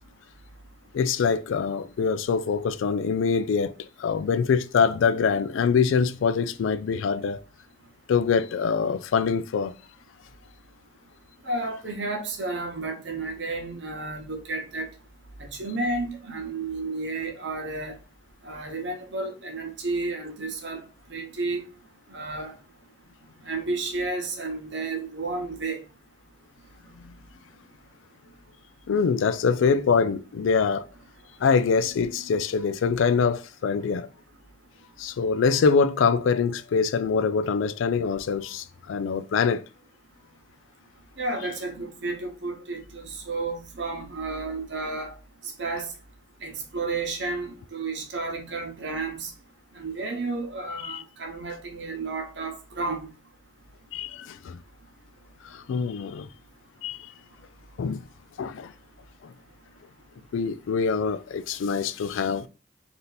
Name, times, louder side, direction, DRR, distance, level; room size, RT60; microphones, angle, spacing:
voice 1, 0.9-7.4 8.1-9.7 27.0-27.1 28.9-30.9 31.4-34.1 35.0-39.6 50.8-51.0 53.9-54.6 55.4-56.3 56.8-57.0 57.8-58.0 58.4-58.7 59.2-59.3 60.3-62.5, left 5 dB, 80° left, 0.3 m, -24 dB
voice 2, 11.4-14.9 15.4-18.0 18.4-21.6 22.1-22.5 23.4-25.8 41.2-45.2 45.4-45.9 46.4-49.3 49.7-53.1, right 3 dB, 60° right, 0.9 m, -32 dB
3.3 x 2.8 x 4.0 m
head